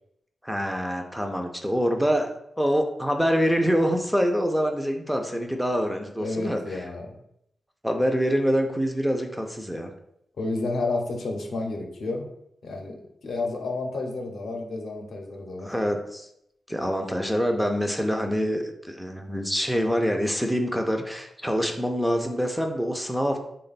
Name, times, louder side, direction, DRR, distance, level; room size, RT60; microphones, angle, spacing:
voice 1, 0.4-2.3 2.6-6.8 7.8-9.9 15.6-16.3 16.7-23.4, equal, ahead, 3 dB, 0.3 m, -25 dB
voice 2, 6.2-7.2 10.4-12.3 12.6-13.0 13.2-15.7, left 2 dB, 65° left, 2 dB, 0.6 m, -30 dB
3.3 x 2.2 x 3.9 m, 0.76 s
wide cardioid pair, 130°, 0 cm